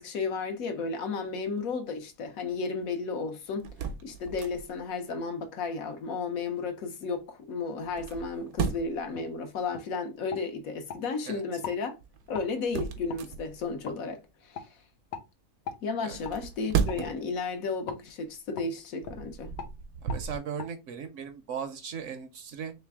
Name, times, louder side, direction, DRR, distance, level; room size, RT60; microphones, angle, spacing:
voice 1, 0.0-3.7 4.0-12.0 12.3-14.8 15.8-19.5, left 4 dB, 70° left, 1.2 m, -33 dB
sound 1, 3.6-4.9 7.8-9.1 12.0-13.8 16.1-17.4 17.9-18.1 18.8-20.4, right 7 dB, 90° right, 1.1 m, -34 dB
sound 2, 9.1-9.3 9.7-9.9 10.3-11.0 11.6-11.8 12.3-12.5 13.1-13.2 13.8-14.0 14.5-14.7 15.1-15.3 15.6-15.8 16.2-16.4 16.9-17.0 17.9-18.0 18.6-18.7 19.0-19.2 19.6-19.7 20.1-20.2 20.6-20.7, left 7 dB, 85° left, 1.3 m, -40 dB
voice 2, 20.0-22.7, right 7 dB, 65° right, 0.9 m, -37 dB
3.3 x 3.2 x 3.4 m
omnidirectional pair, 1.5 m